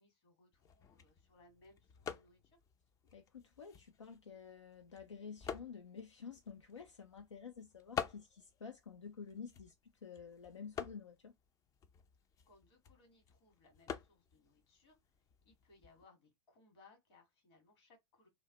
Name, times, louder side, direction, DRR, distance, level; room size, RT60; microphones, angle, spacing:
voice 1, 0.0-2.6 12.4-15.0 15.4-18.3, left 3 dB, 60° left, 1.6 m, -67 dB
sound 1, 0.5-16.1, left 7 dB, 20° left, 0.4 m, -50 dB
voice 2, 3.1-11.3, left 6 dB, 90° left, 0.4 m, -50 dB
2.6 x 2.0 x 2.9 m
figure-of-eight pair, 95°, 15 cm